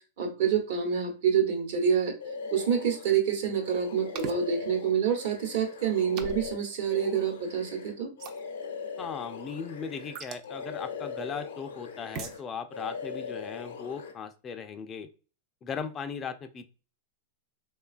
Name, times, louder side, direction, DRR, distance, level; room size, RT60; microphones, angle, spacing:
voice 1, 0.2-2.1 2.5-8.1, right 7 dB, 65° right, 3 dB, 0.8 m, -27 dB
sound 1, 2.2-3.2 3.6-10.2 10.4-12.4 12.7-14.1, left 5 dB, 85° left, 0.6 m, -40 dB
sound 2, 4.1-4.4 6.2-6.6 8.2-8.4 10.1-10.5 12.1-12.4, right 6 dB, 45° right, 0.4 m, -38 dB
voice 2, 9.0-15.1 15.6-16.7, left 6 dB, 25° left, 9 dB, 0.3 m, -38 dB
3.2 x 2.2 x 2.4 m, 0.36 s
hypercardioid pair, 120°, 0 cm